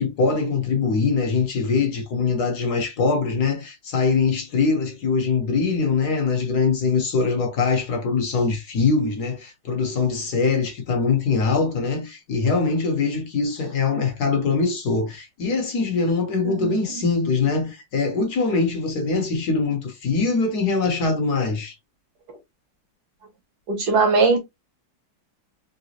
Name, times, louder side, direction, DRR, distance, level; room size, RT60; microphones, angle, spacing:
voice 1, 0.0-21.7, left 4 dB, 60° left, 1.4 m, -23 dB
voice 2, 23.7-24.4, right 4 dB, 60° right, 1.6 m, -19 dB
3.9 x 3.7 x 2.8 m
omnidirectional pair, 2.1 m